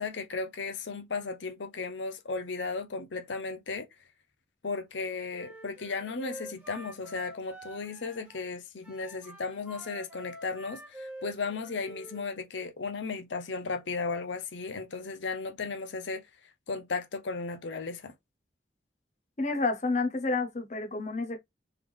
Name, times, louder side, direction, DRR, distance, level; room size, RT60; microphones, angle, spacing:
voice 1, 0.0-3.9 4.6-16.2 16.7-18.1, left 4 dB, 90° left, 0.8 m, -35 dB
Wind instrument woodwind instrument, 5.3-8.5 8.8-12.2, right 1 dB, 5° right, 1.6 m, -47 dB
voice 2, 19.4-21.4, left 3 dB, 40° left, 0.9 m, -29 dB
3.7 x 3.4 x 3.4 m
head